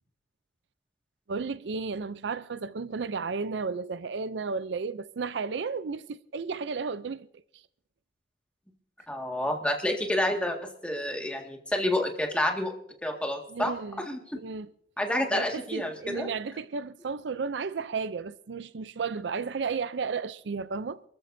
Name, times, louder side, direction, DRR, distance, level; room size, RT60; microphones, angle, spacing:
voice 1, 1.3-7.3 13.5-14.1 14.3-14.7 15.3-21.0, right 5 dB, 75° right, 0.5 m, -33 dB
voice 2, 9.1-12.7 13.0-13.7 14.0-14.2 15.0-16.3, left 1 dB, 5° left, 1.9 m, -29 dB
27.5 x 14.0 x 2.7 m
head